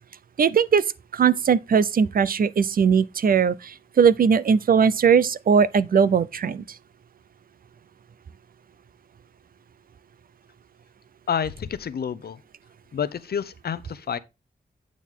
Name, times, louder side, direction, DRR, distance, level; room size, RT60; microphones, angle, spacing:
voice 1, 0.4-0.8 1.1-6.6, right 6 dB, 65° right, 0.5 m, -19 dB
voice 2, 11.3-12.4 12.9-14.2, left 7 dB, 75° left, 0.7 m, -29 dB
9.1 x 6.3 x 3.7 m
wide cardioid pair, 140°, 16 cm